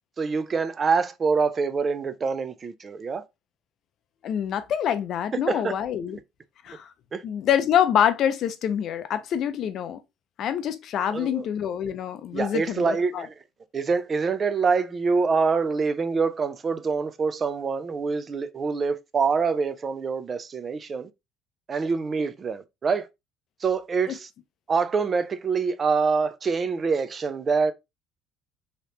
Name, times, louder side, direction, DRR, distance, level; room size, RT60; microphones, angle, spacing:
voice 1, 0.2-3.2 5.3-5.8 6.1-6.2 7.1-7.2 11.1-11.5 12.3-13.3 13.7-21.1 21.7-23.1 23.6-24.3 24.7-27.7, right 5 dB, 25° right, 0.4 m, -25 dB
voice 2, 4.2-6.2 6.6-6.9 7.2-10.0 10.4-13.3, left 9 dB, 50° left, 0.5 m, -26 dB
3.2 x 2.9 x 2.8 m
cardioid pair, 145°, 0 cm